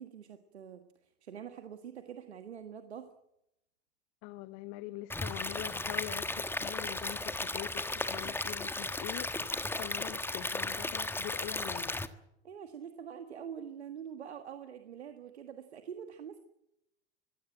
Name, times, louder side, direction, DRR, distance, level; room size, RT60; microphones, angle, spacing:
voice 1, 0.0-3.1 12.4-16.4, right 8 dB, 85° right, 8 dB, 1.7 m, -45 dB
voice 2, 4.2-12.0, left 17 dB, 50° left, 13 dB, 1.1 m, -44 dB
Stream / Liquid, 5.1-12.1, left 2 dB, 5° left, 1.4 m, -35 dB
24.5 x 16.0 x 9.0 m, 0.86 s
hypercardioid pair, 90°, 32 cm